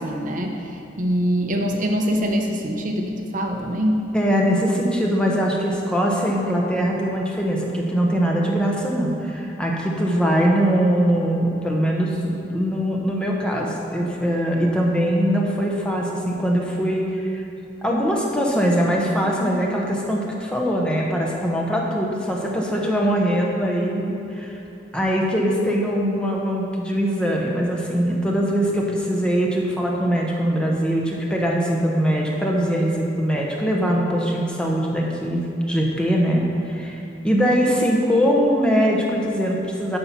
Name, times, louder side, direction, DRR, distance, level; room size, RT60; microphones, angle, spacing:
voice 1, 0.0-4.1, equal, 45° right, 2 dB, 0.8 m, -24 dB
voice 2, 4.1-17.4 17.8-24.6 24.9-36.4 36.7-40.0, equal, 5° left, -2 dB, 1.0 m, -22 dB
11.5 x 5.6 x 5.7 m, 2.8 s
head